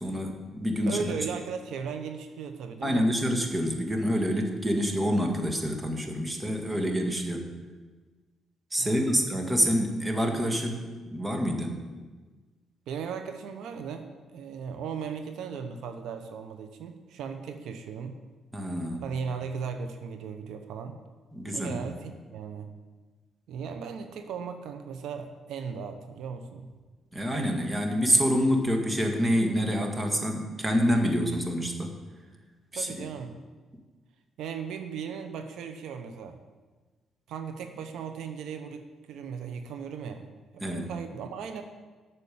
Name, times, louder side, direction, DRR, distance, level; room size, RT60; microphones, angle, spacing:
voice 1, 0.0-1.1 2.8-7.5 8.7-11.8 18.5-19.0 21.3-21.8 27.1-31.9 32.7-33.1 40.6-40.9, equal, 15° right, 3 dB, 1.8 m, -27 dB
voice 2, 0.9-3.1 8.8-9.2 12.9-18.2 19.0-21.0 21.5-22.7 23.5-26.7 32.7-33.4 34.4-36.4 37.3-40.3 40.5-41.6, right 6 dB, 80° right, 7 dB, 0.8 m, -37 dB
8.8 x 6.8 x 8.5 m, 1.3 s
cardioid pair, 90°, 0 cm